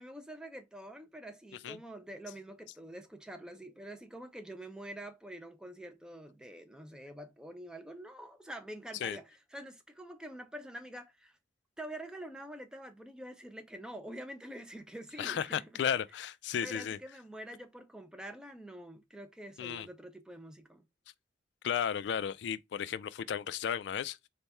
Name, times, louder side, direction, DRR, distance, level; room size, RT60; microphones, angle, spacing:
voice 1, 0.0-11.4 11.8-15.7 16.6-20.8, right 1 dB, 5° right, 0.4 m, -46 dB
voice 2, 15.2-17.0 19.6-19.9 21.6-24.2, left 8 dB, 75° left, 0.3 m, -34 dB
4.2 x 2.2 x 3.3 m
head